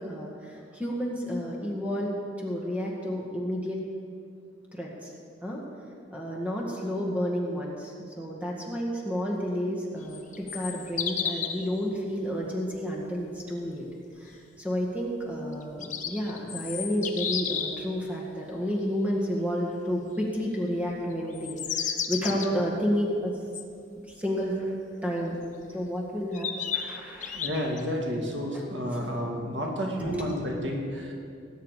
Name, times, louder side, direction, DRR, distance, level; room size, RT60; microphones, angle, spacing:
voice 1, 0.0-3.8 4.7-5.1 5.4-5.6 6.1-13.9 14.2-14.3 14.6-23.3 24.2-24.6 25.0-25.4 25.7-27.4 28.9-29.0 30.1-30.3, equal, 10° right, -3 dB, 1.8 m, -31 dB
sound 1, 10.0-11.7 15.5-17.8 21.3-22.5 23.5-23.6 25.4-25.5 26.3-27.8, left 8 dB, 40° left, 0.9 m, -32 dB
voice 2, 27.3-31.1, equal, 70° right, -1 dB, 2.5 m, -31 dB
19.5 x 9.3 x 4.9 m, 2.3 s
head